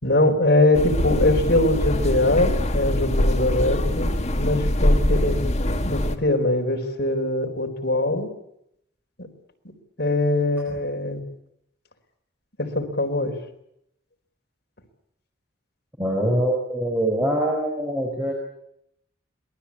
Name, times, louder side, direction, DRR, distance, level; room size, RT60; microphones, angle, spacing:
voice 1, 0.0-8.3 10.0-11.2 12.6-13.4, left 2 dB, 55° left, 3 dB, 4.4 m, -22 dB
sound 1, 0.7-6.2, left 1 dB, 35° left, 2.0 m, -23 dB
voice 2, 16.0-18.3, right 1 dB, 10° right, 0 dB, 4.6 m, -23 dB
27.0 x 20.0 x 8.6 m, 0.78 s
head